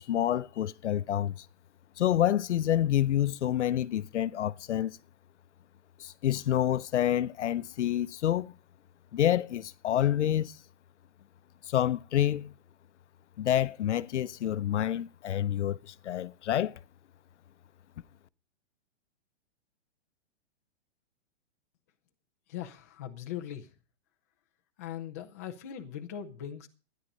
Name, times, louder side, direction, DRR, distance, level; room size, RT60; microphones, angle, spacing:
voice 1, 0.0-1.4 2.0-5.0 6.0-8.5 9.1-10.6 11.7-12.5 13.4-16.8, left 11 dB, 80° left, 0.7 m, -28 dB
voice 2, 22.5-23.7 24.8-26.7, left 10 dB, 15° left, 0.6 m, -40 dB
13.0 x 10.5 x 5.3 m
hypercardioid pair, 180°, 35 cm